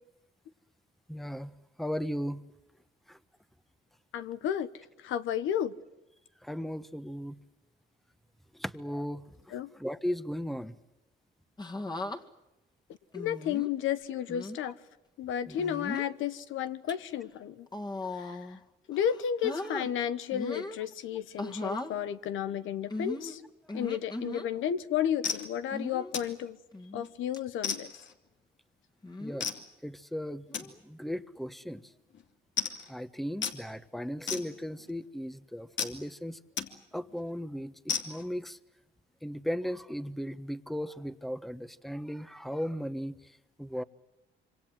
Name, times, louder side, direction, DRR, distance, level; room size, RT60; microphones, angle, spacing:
voice 1, 1.1-1.5 1.8-2.4 3.1-3.2 6.4-7.4 8.5-10.7 15.5-15.6 23.7-23.8 29.2-29.5 29.8-31.8 32.9-36.4 36.9-38.6 39.2-43.8, equal, ahead, 13 dB, 1.2 m, -37 dB
voice 2, 4.1-4.7 5.0-5.7 9.5-9.7 13.1-14.8 15.2-17.7 18.2-18.4 18.9-23.4 23.7-26.6 26.9-27.9, left 9 dB, 85° left, 12 dB, 1.2 m, -32 dB
sound 1, 11.6-12.2 13.1-13.7 14.3-14.6 15.6-16.1 16.7-16.9 17.7-18.6 18.9-19.9 20.3-20.8 21.4-21.9 22.9-24.5 25.7-26.1 26.7-27.1 27.3-27.4 29.0-29.4 30.5-30.8, left 2 dB, 20° left, 2.2 m, -38 dB
sound 2, 24.7-24.8 25.2-25.5 26.1-26.4 26.8-27.1 27.6-28.1 29.4-29.6 30.5-30.7 31.4-31.5 31.8-31.9 32.1-32.2 32.6-32.9 33.4-33.6 34.3-34.9 35.8-36.0 36.6-36.7 37.1-37.2 37.9-38.2, left 6 dB, 70° left, 2.8 m, -34 dB
26.5 x 25.0 x 7.7 m, 0.95 s
cardioid pair, 90°, 20 cm